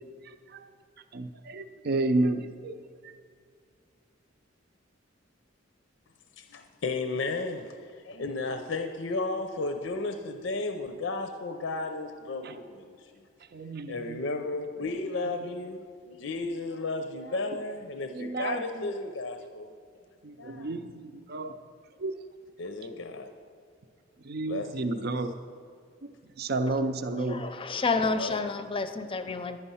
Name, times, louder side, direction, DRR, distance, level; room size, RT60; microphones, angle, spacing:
voice 1, 0.2-0.7 1.1-2.8 12.4-12.5 13.5-14.2 18.1-18.9 20.2-21.6 22.0-22.2 24.2-25.3 26.0-27.5, right 2 dB, 55° right, 8 dB, 0.5 m, -31 dB
voice 2, 6.4-13.2 13.9-19.7 20.4-20.7 22.6-23.3 24.5-25.1 28.0-28.4, left 3 dB, 75° left, 6 dB, 0.6 m, -34 dB
voice 3, 27.1-29.6, left 4 dB, 30° left, 9 dB, 0.6 m, -30 dB
10.5 x 10.5 x 5.6 m, 2.2 s
head